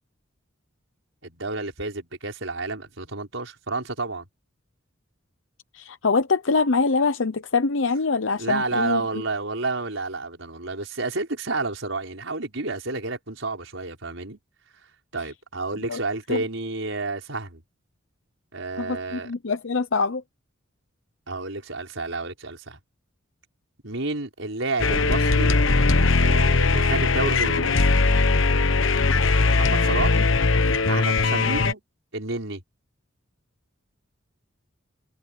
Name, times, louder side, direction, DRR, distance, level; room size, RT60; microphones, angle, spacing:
voice 1, 1.2-4.3 8.4-14.4 15.1-17.6 18.5-19.3 21.3-22.8 23.8-25.6 26.2-27.9 29.5-30.3 30.9-31.8 32.1-32.6, right 3 dB, 80° right, 5.3 m, -30 dB
voice 2, 5.7-9.2 15.9-16.0 16.3-16.4 18.8-20.2 30.1-30.2, left 4 dB, 75° left, 0.8 m, -24 dB
sound 1, 24.8-31.7, left 3 dB, 90° left, 1.2 m, -20 dB
head